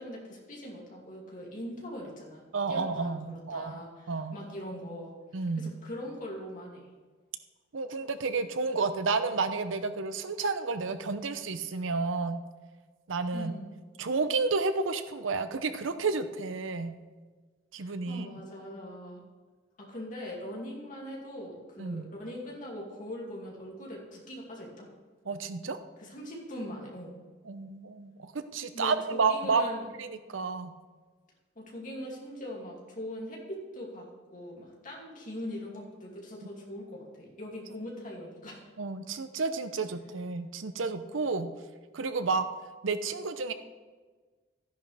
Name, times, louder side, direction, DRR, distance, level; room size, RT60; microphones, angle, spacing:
voice 1, 0.0-2.4 2.7-5.1 5.6-6.9 13.3-13.7 17.8-19.2 19.8-24.9 26.0-27.1 28.7-29.9 31.6-38.6, left 1 dB, 45° left, -3 dB, 2.5 m, -41 dB
voice 2, 2.5-3.8 4.1-4.4 5.3-5.7 7.7-12.4 13.1-13.5 14.0-16.9 17.7-18.3 21.8-22.1 25.3-25.8 27.5-29.6 30.0-30.7 38.8-41.5 41.9-42.5 42.8-43.5, right 4 dB, 85° right, 10 dB, 0.7 m, -31 dB
13.5 x 10.0 x 3.4 m, 1.4 s
head